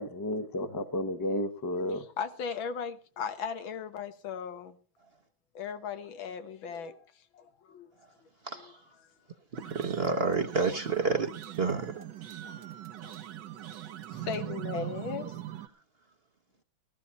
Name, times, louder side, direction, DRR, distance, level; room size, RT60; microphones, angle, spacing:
voice 1, 0.0-2.0, left 1 dB, 20° left, 0.6 m, -32 dB
voice 2, 2.2-4.8 5.6-7.1 7.3-7.9 8.5-8.6 12.4-12.6 13.0-13.2 13.4-13.5 14.1-15.4, left 6 dB, 90° left, 2.0 m, -37 dB
voice 3, 8.4-8.8 9.5-11.3 11.6-11.9, right 4 dB, 40° right, 0.9 m, -29 dB
sound 1, 9.5-15.7, right 12 dB, 70° right, 1.5 m, -41 dB
15.0 x 15.0 x 4.1 m
omnidirectional pair, 2.1 m